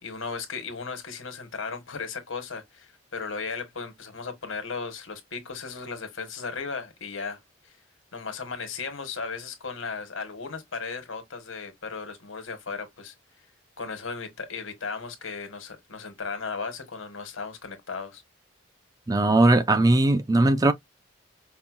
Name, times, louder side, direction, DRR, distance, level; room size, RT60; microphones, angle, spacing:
voice 1, 0.0-7.4 8.1-13.1 13.8-18.2, left 5 dB, 85° left, 1.4 m, -36 dB
voice 2, 19.1-20.7, right 2 dB, 20° right, 0.4 m, -19 dB
5.4 x 2.2 x 2.4 m
head